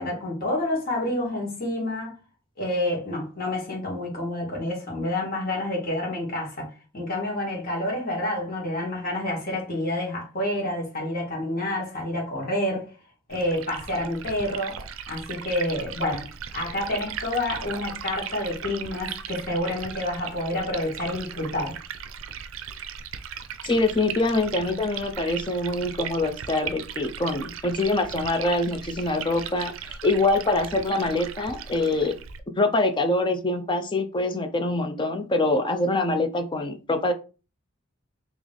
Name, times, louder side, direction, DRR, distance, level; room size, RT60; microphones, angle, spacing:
voice 1, 0.0-2.2 2.6-12.9 13.3-14.8 15.1-16.2 16.5-21.8, left 1 dB, 45° left, 1.8 m, -28 dB
Liquid, 13.3-32.4, right 8 dB, 75° right, 0.4 m, -37 dB
voice 2, 23.6-32.1 32.6-37.1, left 2 dB, 25° left, 0.5 m, -24 dB
3.2 x 3.0 x 3.8 m
head